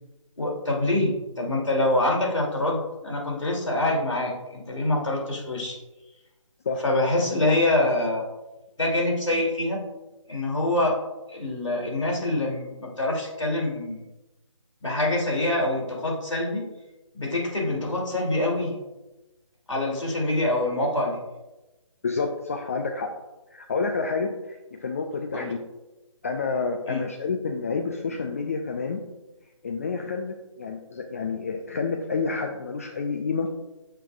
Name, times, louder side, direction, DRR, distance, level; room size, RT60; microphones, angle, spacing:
voice 1, 0.4-5.8 6.8-8.3 8.8-9.8 10.3-11.0 11.3-14.0 14.8-16.6 17.1-18.8 19.7-21.2 25.3-25.5 26.9-27.0, left 1 dB, 65° left, -1 dB, 2.7 m, -25 dB
voice 2, 22.0-23.2 23.5-25.6 26.2-29.0 29.6-33.5, left 4 dB, 25° left, 4 dB, 0.4 m, -29 dB
10.5 x 6.7 x 2.4 m, 1.0 s
figure-of-eight pair, 150°, 17 cm